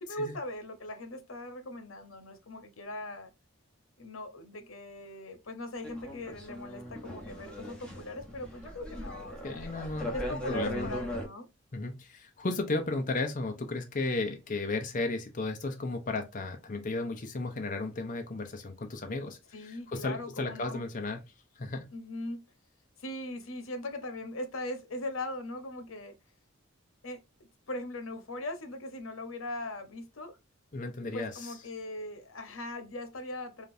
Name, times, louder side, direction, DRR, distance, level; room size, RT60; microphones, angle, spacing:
voice 1, 0.0-3.3 4.0-9.6 10.1-11.5 19.5-20.8 21.9-22.4 23.0-26.1 27.0-30.4 31.1-33.7, left 1 dB, 85° left, 1.0 m, -40 dB
sound 1, 5.8-11.3, equal, 5° left, 1.1 m, -39 dB
voice 2, 9.4-10.1 10.5-11.0 11.7-21.2 21.6-21.9 30.7-31.5, left 3 dB, 40° left, 0.7 m, -34 dB
5.1 x 2.5 x 2.6 m
head